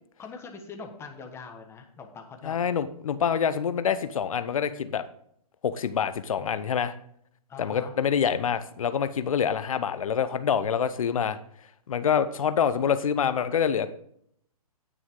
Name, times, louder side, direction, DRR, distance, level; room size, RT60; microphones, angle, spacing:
voice 1, 0.2-2.8 7.5-7.9, left 5 dB, 15° left, 4 dB, 1.4 m, -43 dB
voice 2, 2.4-5.0 5.6-6.9 7.6-11.4 11.9-13.9, left 7 dB, 60° left, 13 dB, 0.7 m, -26 dB
9.7 x 9.7 x 3.8 m, 0.68 s
figure-of-eight pair, 130°, 19 cm